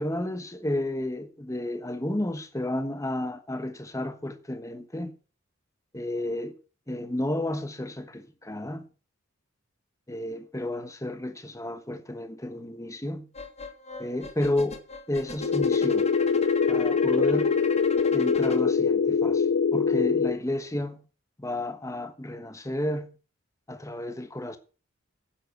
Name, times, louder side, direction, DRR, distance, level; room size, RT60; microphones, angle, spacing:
voice 1, 0.0-5.1 5.9-6.5 6.9-8.9 10.1-13.3 14.0-14.8 15.1-16.1 16.7-17.5 18.1-21.0 21.4-23.1 23.7-24.6, left 1 dB, 15° left, 1.3 m, -32 dB
sound 1, 13.3-18.6, left 3 dB, 30° left, 1.5 m, -39 dB
sound 2, 15.4-20.4, left 5 dB, 70° left, 0.5 m, -23 dB
10.0 x 7.6 x 7.5 m
head